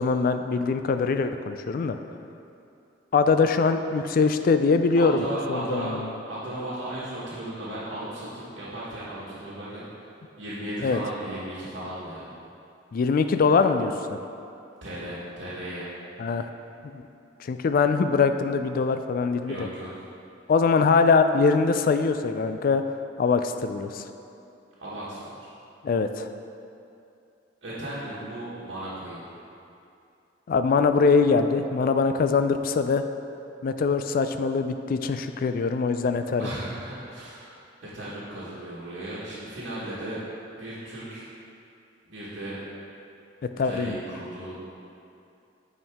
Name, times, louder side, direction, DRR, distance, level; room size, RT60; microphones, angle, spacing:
voice 1, 0.0-2.0 3.1-6.1 10.8-11.0 12.9-13.9 16.2-16.5 16.9-17.0 17.4-19.7 20.5-22.8 23.2-24.0 25.8-26.3 30.5-33.0 33.6-36.5 43.4-44.0, left 4 dB, 50° left, 8 dB, 0.3 m, -23 dB
voice 2, 5.0-5.9 6.3-9.8 10.4-12.3 14.8-15.9 19.4-20.0 24.8-25.5 27.6-29.3 36.4-40.2 40.5-41.3 42.1-42.6 43.6-44.5, right 1 dB, 75° right, -11 dB, 1.3 m, -36 dB
8.7 x 4.5 x 3.5 m, 2.7 s
head